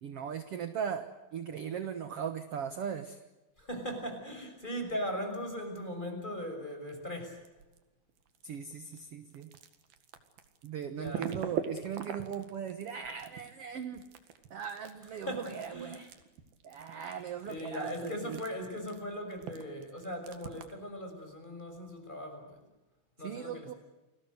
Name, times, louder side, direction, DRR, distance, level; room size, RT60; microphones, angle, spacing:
voice 1, 0.0-3.2 8.4-9.5 10.6-14.0 14.5-16.1 16.6-18.4 23.2-23.7, right 8 dB, 55° right, 9 dB, 1.8 m, -39 dB
voice 2, 3.6-7.4 10.9-11.3 15.0-16.0 17.2-22.6 23.2-23.8, equal, 10° left, 4 dB, 6.2 m, -39 dB
sound 1, 6.7-7.8 8.1-20.9, right 8 dB, 85° right, 3.8 m, -43 dB
29.5 x 20.5 x 8.1 m, 1.1 s
omnidirectional pair, 4.2 m